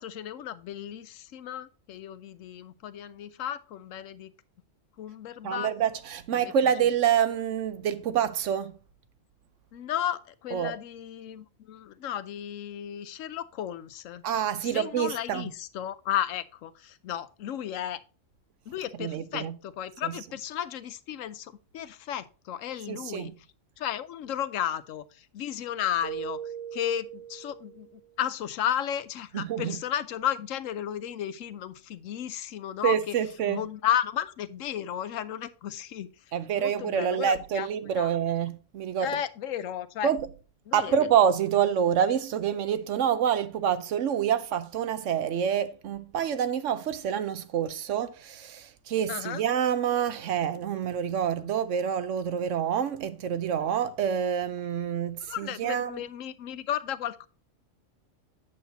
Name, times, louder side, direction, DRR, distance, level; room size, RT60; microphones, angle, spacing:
voice 1, 0.0-4.3 5.0-5.7 6.3-6.7 9.7-14.3 14.6-18.0 18.7-23.3 23.8-26.4 26.7-33.1 33.5-36.1 36.6-37.7 38.0-38.1 39.0-40.1 40.7-40.9 49.1-49.4 55.3-57.3, left 10 dB, 85° left, 1.0 m, -34 dB
voice 2, 5.4-8.8 10.5-10.7 14.2-15.5 19.0-19.6 20.0-20.1 22.9-23.3 29.3-29.8 32.8-33.6 36.3-39.1 40.0-40.3 40.7-56.0, right 8 dB, 75° right, 1.0 m, -27 dB
Keyboard (musical), 26.0-28.0, right 8 dB, 15° left, 1.8 m, -39 dB
8.1 x 7.1 x 2.8 m
omnidirectional pair, 1.3 m